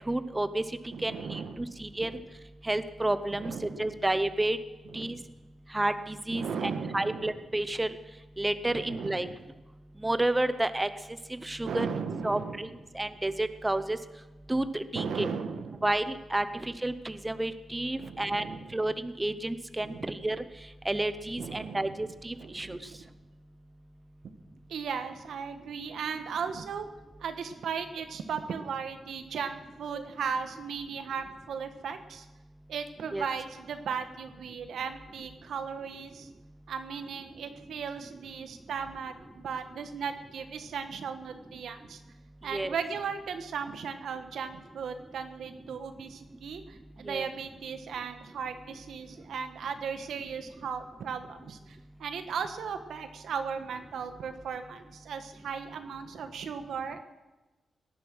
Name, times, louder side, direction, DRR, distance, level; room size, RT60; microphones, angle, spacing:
voice 1, 0.1-0.6 1.0-2.1 2.6-3.5 3.8-4.6 4.9-5.2 5.7-7.9 8.4-9.3 10.0-10.9 11.4-11.9 12.2-12.7 12.9-14.0 14.5-15.3 15.8-18.4 18.7-20.4 20.9-22.8 33.1-33.3 42.5-42.8 47.1-47.3, right 1 dB, 15° right, 12 dB, 0.7 m, -30 dB
voice 2, 0.9-2.2 3.4-3.9 4.8-5.2 6.3-7.3 8.7-9.3 11.6-12.6 14.9-15.9 18.0-18.8 19.8-20.2 21.4-22.0 22.4-23.1 24.7-26.9 27.2-32.3 32.7-36.3 36.7-42.0 42.4-57.0, right 6 dB, 90° right, 8 dB, 1.3 m, -37 dB
17.5 x 11.0 x 6.3 m, 1.1 s
wide cardioid pair, 110°, 0 cm